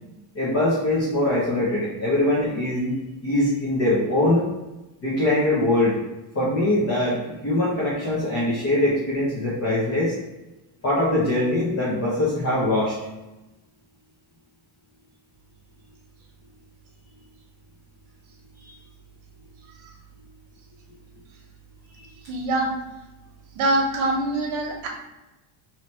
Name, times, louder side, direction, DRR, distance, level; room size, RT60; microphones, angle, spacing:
voice 1, 0.3-4.5 5.0-6.0 6.3-10.1 10.8-12.9 18.6-18.7 22.0-22.1, left 1 dB, 30° left, -7 dB, 0.8 m, -22 dB
voice 2, 22.3-22.7 23.5-24.9, right 2 dB, 70° right, 0 dB, 1.0 m, -24 dB
3.1 x 3.0 x 4.3 m, 1.0 s
cardioid pair, 180°, 49 cm